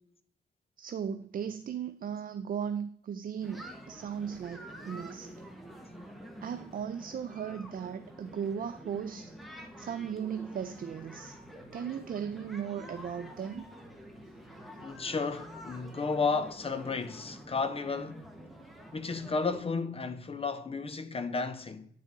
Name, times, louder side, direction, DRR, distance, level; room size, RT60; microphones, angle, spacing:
voice 1, 0.8-5.3 6.4-9.3 9.8-11.3 11.7-13.7, right 8 dB, 50° right, 0.4 m, -37 dB
sound 1, 3.4-19.6, equal, ahead, 1.2 m, -48 dB
voice 2, 14.8-18.4 18.9-21.9, left 4 dB, 30° left, 0.7 m, -33 dB
9.5 x 4.1 x 3.6 m
cardioid pair, 85°, 18 cm